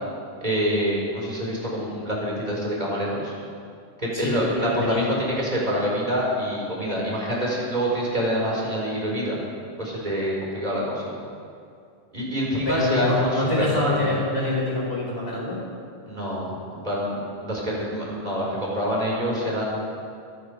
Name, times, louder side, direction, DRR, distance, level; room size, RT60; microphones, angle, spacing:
voice 1, 0.4-3.3 4.0-9.4 9.8-11.1 12.1-14.1 16.1-19.6, equal, 35° right, -4 dB, 4.7 m, -26 dB
voice 2, 4.1-5.2 12.7-15.5, left 1 dB, 55° left, -3 dB, 4.8 m, -25 dB
24.5 x 11.0 x 5.1 m, 2.4 s
omnidirectional pair, 1.3 m